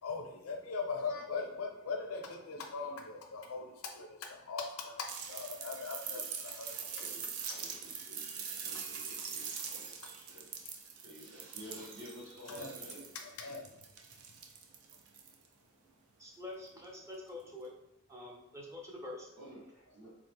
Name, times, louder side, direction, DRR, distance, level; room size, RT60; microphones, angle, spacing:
voice 1, 0.0-7.0 12.5-13.0 13.4-13.8, left 4 dB, 90° left, 3 dB, 0.5 m, -40 dB
sound 1, 5.1-15.5 16.8-16.9, right 6 dB, 85° right, 0.4 m, -43 dB
voice 2, 6.8-13.0 19.4-20.1, equal, 60° right, -10 dB, 1.5 m, -52 dB
voice 3, 16.2-17.7 18.1-19.3, left 2 dB, 15° right, -1 dB, 0.4 m, -46 dB
2.8 x 2.0 x 3.3 m, 0.85 s
head